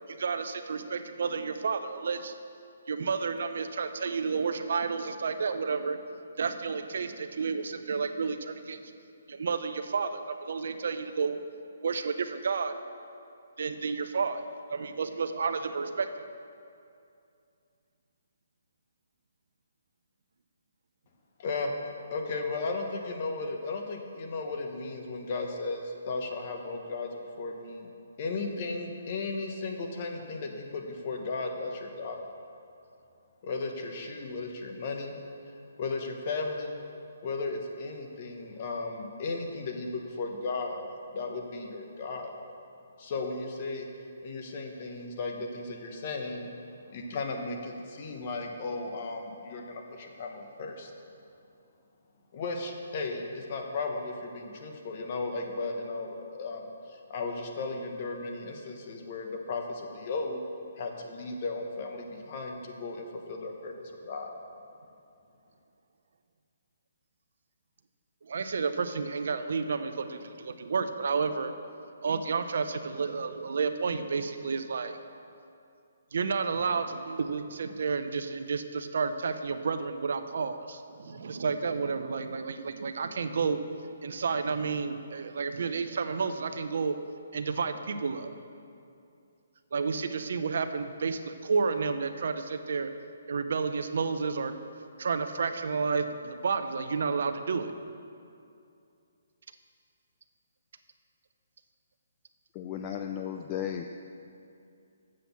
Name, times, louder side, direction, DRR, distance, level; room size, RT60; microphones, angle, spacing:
voice 1, 0.1-2.3 2.9-6.0 6.4-8.8 9.3-11.4 11.8-12.7 13.6-14.4 14.7-16.1 68.2-71.5 72.0-75.0 76.1-83.6 84.0-87.0 87.3-88.3 89.7-92.9 93.3-94.5 95.0-97.7, right 5 dB, 65° right, 9 dB, 0.5 m, -31 dB
voice 2, 21.4-21.7 22.1-27.1 27.4-27.9 28.2-32.2 33.4-35.2 35.8-36.8 37.2-42.3 43.0-43.9 44.2-46.5 46.9-50.9 52.3-60.4 60.7-64.3, left 3 dB, 40° left, 3 dB, 1.0 m, -35 dB
voice 3, 102.5-103.8, left 9 dB, 25° left, 4 dB, 0.3 m, -34 dB
7.6 x 5.9 x 7.0 m, 2.5 s
hypercardioid pair, 160°, 0 cm